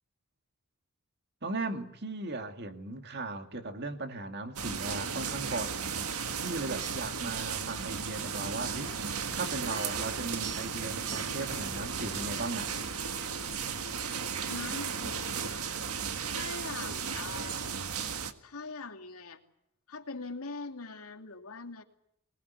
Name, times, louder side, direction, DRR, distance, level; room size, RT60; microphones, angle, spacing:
voice 1, 1.4-5.9 6.2-8.9 9.3-12.7, right 2 dB, 50° right, 2.3 m, -37 dB
sound 1, 4.6-18.3, right 6 dB, 80° right, 1.7 m, -35 dB
sound 2, 9.4-15.7, left 4 dB, 20° right, 4.5 m, -50 dB
voice 2, 14.5-15.7 16.2-17.7 18.4-19.4 19.9-21.8, left 3 dB, 80° left, 2.6 m, -42 dB
24.0 x 20.0 x 9.4 m
head